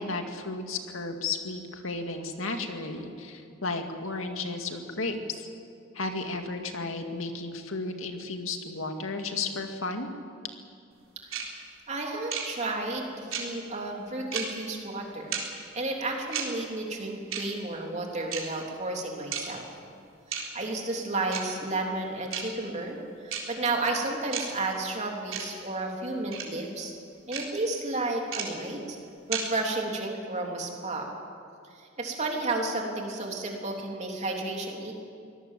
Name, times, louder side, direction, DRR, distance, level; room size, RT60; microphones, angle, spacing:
voice 1, 0.0-5.5 5.9-10.1, left 3 dB, 90° left, 5 dB, 2.1 m, -33 dB
sound 1, 11.3-11.4 12.3-12.4 13.3-13.4 14.3-14.4 15.3-15.4 16.3-16.4 17.3-17.4 18.3-18.4 19.3-19.4 20.3-20.4 21.3-21.4 22.3-22.4 23.3-23.4 24.3-24.4 25.3-25.4 26.3-26.4 27.3-27.4 28.3-28.4 29.3-29.4, right 8 dB, 75° right, 3.9 m, -31 dB
voice 2, 11.9-15.4 15.7-19.6 20.3-26.9 27.3-29.0 29.3-31.1 31.7-34.9, right 2 dB, 35° right, 1 dB, 3.3 m, -32 dB
24.0 x 18.0 x 7.6 m, 2.4 s
head